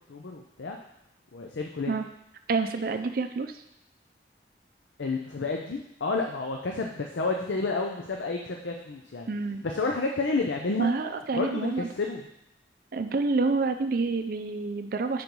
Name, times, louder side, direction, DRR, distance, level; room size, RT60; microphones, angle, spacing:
voice 1, 0.1-0.8 1.3-1.9 5.0-9.3 9.6-10.9 11.3-12.2, left 3 dB, 85° left, 2 dB, 0.6 m, -30 dB
voice 2, 2.5-3.6 9.3-9.7 10.8-11.9 12.9-15.2, right 3 dB, 55° right, 7 dB, 0.4 m, -28 dB
5.2 x 4.6 x 5.3 m, 0.81 s
head